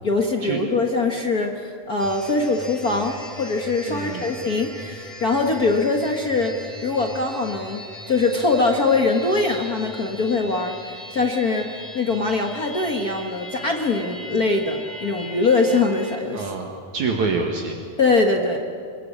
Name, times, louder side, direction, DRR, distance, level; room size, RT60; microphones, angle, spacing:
voice 1, 0.0-16.5 18.0-18.6, left 3 dB, 65° left, 2 dB, 0.9 m, -22 dB
sound 1, 2.0-16.2, left 1 dB, ahead, 4.4 m, -39 dB
voice 2, 3.9-4.3 16.3-17.8, right 4 dB, 60° right, 1 dB, 3.0 m, -26 dB
27.0 x 21.5 x 8.7 m, 2.4 s
omnidirectional pair, 4.0 m